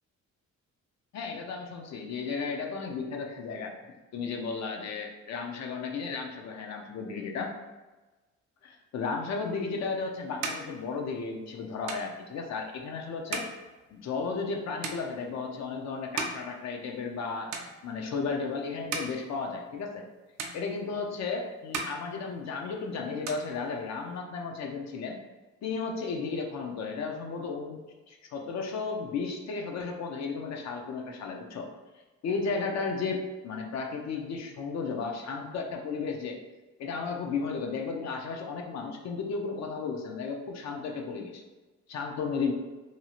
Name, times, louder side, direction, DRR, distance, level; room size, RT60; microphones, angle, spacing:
voice 1, 1.1-3.7 4.1-7.5 8.6-13.5 13.9-17.5 17.8-20.0 20.5-25.2 25.6-27.8 28.1-31.7 32.2-36.4 36.8-41.4 41.9-42.5, left 4 dB, 60° left, 2 dB, 0.5 m, -34 dB
sound 1, 9.6-17.2 17.5-18.2 18.6-20.1 20.4-21.3 21.6-22.8 23.1-24.2, right 4 dB, 65° right, 0.5 m, -40 dB
2.7 x 2.3 x 2.9 m, 1.2 s
cardioid pair, 90°, 30 cm